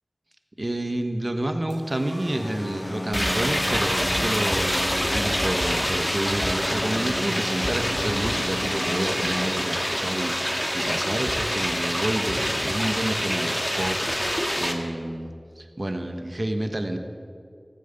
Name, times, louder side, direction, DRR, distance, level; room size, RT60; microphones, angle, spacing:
voice 1, 0.6-17.0, right 1 dB, 55° right, 6 dB, 1.3 m, -29 dB
sound 1, 1.7-10.8, right 1 dB, 85° right, 4.8 m, -42 dB
sound 2, 2.2-9.5, left 1 dB, 75° left, 0.9 m, -35 dB
sound 3, 3.1-14.7, equal, 5° left, 1.8 m, -26 dB
15.5 x 9.4 x 8.1 m, 2.3 s
wide cardioid pair, 40°, 0 cm